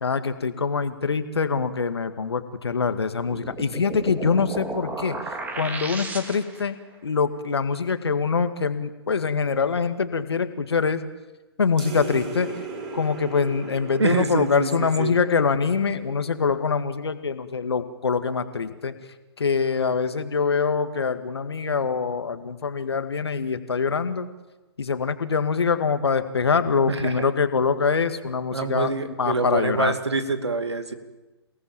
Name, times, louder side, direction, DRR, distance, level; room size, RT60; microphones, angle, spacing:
voice 1, 0.0-6.8 7.0-11.0 11.6-12.5 12.9-18.9 19.4-24.3 24.8-29.9, left 5 dB, 70° left, 10 dB, 2.0 m, -24 dB
sound 1, 3.2-6.7, right 2 dB, 10° right, 2.3 m, -34 dB
sound 2, 11.8-16.7, right 3 dB, 30° right, 7.7 m, -38 dB
voice 2, 14.0-15.1 26.9-27.3 28.5-30.9, right 3 dB, 75° right, 9 dB, 2.6 m, -26 dB
29.5 x 18.5 x 7.4 m, 1.1 s
figure-of-eight pair, 125°, 14 cm